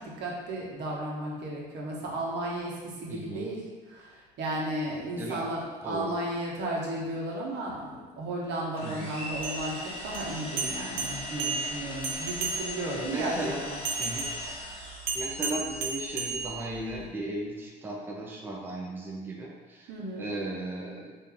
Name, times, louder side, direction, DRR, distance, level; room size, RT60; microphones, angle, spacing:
voice 1, 0.0-3.6 3.9-13.4 13.6-13.8 19.9-20.3, right 1 dB, 70° right, -3 dB, 0.9 m, -34 dB
voice 2, 3.1-3.5 5.2-5.4 5.8-6.2 8.8-9.2 12.9-13.7 14.0-14.3 15.1-21.2, right 1 dB, 10° right, -3 dB, 0.5 m, -36 dB
sound 1, 8.7-15.4, left 2 dB, 30° left, 1.0 m, -40 dB
sound 2, 9.3-13.0 13.8-17.0, right 4 dB, 85° right, 0.6 m, -34 dB
2.9 x 2.6 x 3.7 m, 1.3 s
cardioid pair, 100°, 19 cm